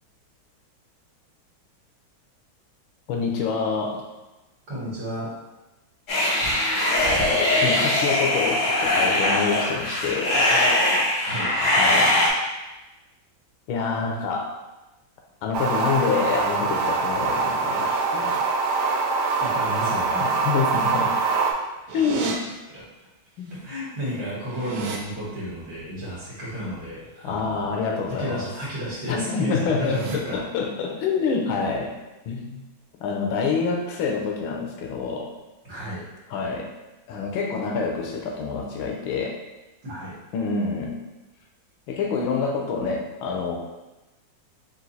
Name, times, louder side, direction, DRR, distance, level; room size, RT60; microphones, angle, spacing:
voice 1, 3.1-4.0 7.6-10.4 11.7-12.1 13.7-14.5 15.4-18.3 20.4-21.1 21.9-22.4 23.4-23.5 27.2-28.5 29.1-31.9 32.3-32.6 33.0-35.3 36.3-36.7 37.1-39.3 40.3-41.0 41.9-43.5, left 5 dB, 90° left, 1 dB, 1.5 m, -26 dB
voice 2, 4.7-5.3 11.2-11.5 19.4-20.3 22.7-22.8 23.5-27.7 28.1-30.4 35.6-36.0 39.8-40.2, equal, 55° right, -7 dB, 1.9 m, -32 dB
sound 1, 6.1-12.3, left 1 dB, 60° left, 1.7 m, -21 dB
sound 2, 15.5-21.5, right 4 dB, 75° right, 1.0 m, -24 dB
sound 3, 21.9-22.4 23.5-23.6 23.9-25.0 28.2-28.5 28.9-29.2 29.6-30.2, right 5 dB, 90° right, 1.5 m, -35 dB
4.4 x 2.5 x 4.0 m, 1.1 s
omnidirectional pair, 2.2 m